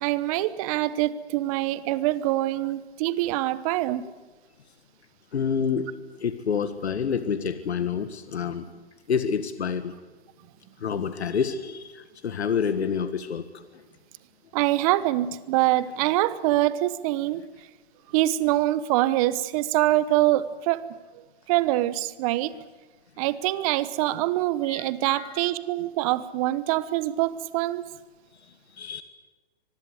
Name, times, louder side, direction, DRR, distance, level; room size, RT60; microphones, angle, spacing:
voice 1, 0.0-4.0 14.5-17.4 18.1-20.8 21.5-22.5 23.2-27.8, right 16 dB, 35° right, 16 dB, 1.1 m, -24 dB
voice 2, 5.3-5.9 6.2-8.7 9.1-9.9 10.8-13.6 24.7-25.5 28.8-29.0, left 6 dB, 75° left, 11 dB, 1.8 m, -28 dB
25.0 x 20.0 x 8.1 m, 1.3 s
hypercardioid pair, 135°, 33 cm